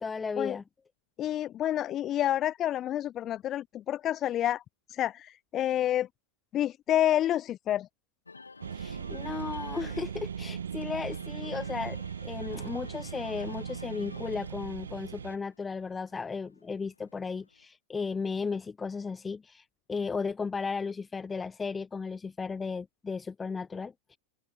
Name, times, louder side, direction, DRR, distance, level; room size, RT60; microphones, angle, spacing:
voice 1, 0.0-0.6 8.7-24.2, left 5 dB, 15° left, 0.8 m, -35 dB
voice 2, 1.2-4.6 4.9-6.1 6.5-7.9, left 12 dB, 30° left, 0.4 m, -28 dB
sound 1, 8.2-17.6, left 4 dB, 80° left, 4.0 m, -51 dB
sound 2, 8.6-15.4, right 7 dB, 70° right, 0.7 m, -38 dB
open air
figure-of-eight pair, 90°, 0 cm